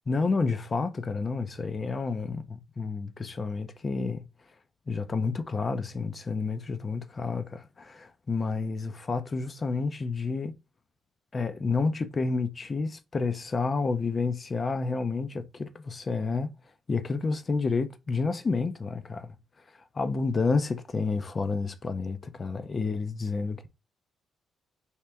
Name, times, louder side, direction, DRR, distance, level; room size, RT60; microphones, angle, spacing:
voice 1, 0.1-4.2 4.9-10.5 11.3-16.5 16.9-19.3 19.9-23.7, left 4 dB, 35° left, 0.5 m, -30 dB
4.3 x 2.5 x 3.4 m
cardioid pair, 90°, 0 cm